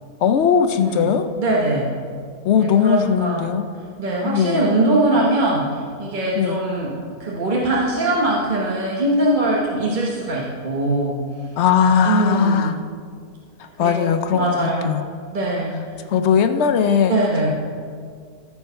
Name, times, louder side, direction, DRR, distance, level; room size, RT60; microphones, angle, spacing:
voice 1, 0.2-1.3 2.4-3.6 4.2-4.7 6.4-6.6 11.6-12.7 13.8-15.1 16.1-17.2, left 7 dB, 70° left, 8 dB, 0.6 m, -19 dB
voice 2, 1.4-1.9 2.5-3.5 4.0-6.9 7.2-11.2 11.8-12.7 13.8-14.9 15.3-15.7 17.1-17.5, right 2 dB, 35° right, -4 dB, 1.0 m, -21 dB
14.0 x 4.6 x 5.5 m, 2.1 s
omnidirectional pair, 1.6 m